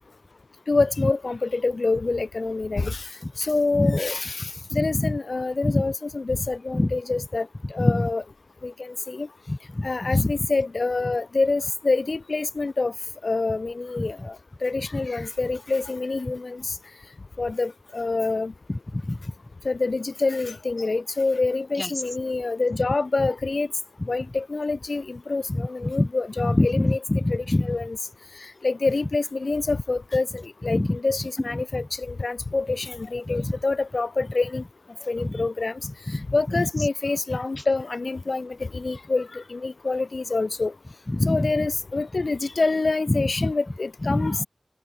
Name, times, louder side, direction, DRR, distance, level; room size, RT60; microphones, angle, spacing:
voice 1, 0.7-3.1 3.4-8.2 8.6-9.3 9.8-12.9 13.2-14.4 14.6-16.6 17.4-18.5 19.6-23.7 24.1-27.0 27.3-28.0 28.6-34.6 35.1-35.8 36.3-40.7 41.3-44.5, left 3 dB, 75° left, 0.5 m, -26 dB
voice 2, 3.7-4.2 4.7-5.2 5.6-5.9 6.7-6.9 7.6-8.1 9.5-10.5 14.0-14.1 18.7-19.3 21.8-21.9 22.7-22.8 24.0-24.1 25.5-26.1 26.4-27.8 30.7-31.0 31.5-31.9 33.3-33.5 35.2-35.5 35.8-36.9 37.3-37.6 41.1-41.7 43.1-43.5 44.0-44.5, left 1 dB, 35° left, 1.5 m, -26 dB
wide cardioid pair, 45°, 0 cm